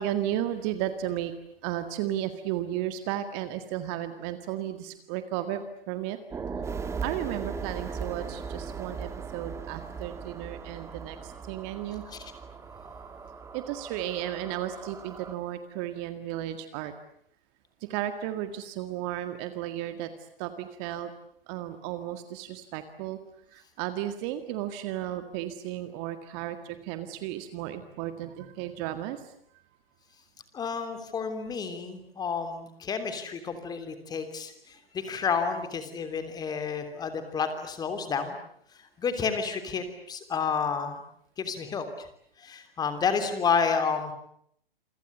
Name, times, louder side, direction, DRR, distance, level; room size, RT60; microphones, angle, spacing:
voice 1, 0.0-1.3 1.6-6.2 7.0-12.0 13.5-16.9 17.8-20.1 20.4-21.1 21.5-29.3, right 12 dB, 30° right, 10 dB, 1.9 m, -34 dB
sound 1, 6.3-15.3, right 5 dB, 10° right, 1.8 m, -38 dB
voice 2, 30.5-38.4 39.0-41.0 41.4-41.8 42.4-44.1, left 6 dB, 15° left, 8 dB, 3.2 m, -30 dB
28.0 x 25.0 x 8.1 m, 0.67 s
figure-of-eight pair, 125°, 29 cm